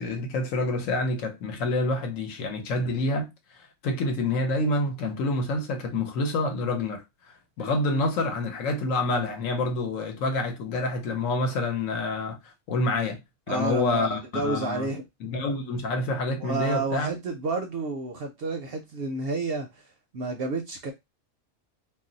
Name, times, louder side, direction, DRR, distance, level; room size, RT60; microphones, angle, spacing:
voice 1, 0.0-3.3 3.8-7.0 7.6-12.4 12.7-13.2 13.5-14.9 15.2-17.1, left 2 dB, 80° left, 1.1 m, -27 dB
voice 2, 13.5-15.0 16.4-19.9 20.1-20.9, right 3 dB, 65° right, 0.6 m, -30 dB
2.5 x 2.0 x 3.7 m
omnidirectional pair, 1.4 m